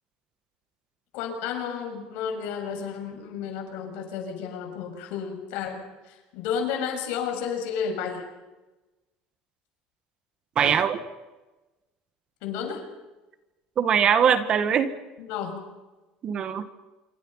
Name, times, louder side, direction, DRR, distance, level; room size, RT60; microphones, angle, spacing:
voice 1, 1.1-8.2 12.4-12.8 15.3-15.6, left 7 dB, 75° left, 4 dB, 6.9 m, -32 dB
voice 2, 10.5-11.0 13.8-14.9 16.2-16.6, right 8 dB, 35° right, 11 dB, 1.7 m, -21 dB
27.0 x 24.5 x 5.8 m, 1.1 s
cardioid pair, 155°, 3 cm